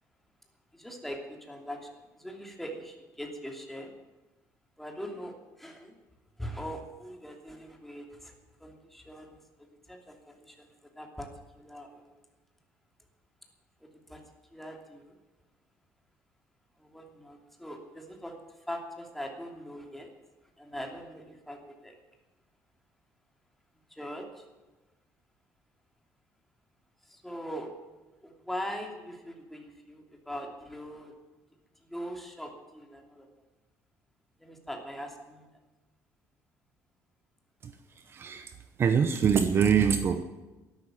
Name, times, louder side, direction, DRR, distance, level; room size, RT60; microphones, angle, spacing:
voice 1, 0.7-3.9 4.8-6.0 6.4-12.2 13.8-14.2 14.5-15.2 16.8-20.1 20.6-22.0 23.9-24.5 27.0-27.7 28.2-31.1 31.8-33.3 34.4-35.5, equal, 5° left, 2 dB, 2.7 m, -42 dB
voice 2, 37.6-38.5 38.8-40.2, right 7 dB, 40° right, 10 dB, 0.9 m, -25 dB
13.0 x 11.5 x 9.1 m, 1.1 s
cardioid pair, 145°, 7 cm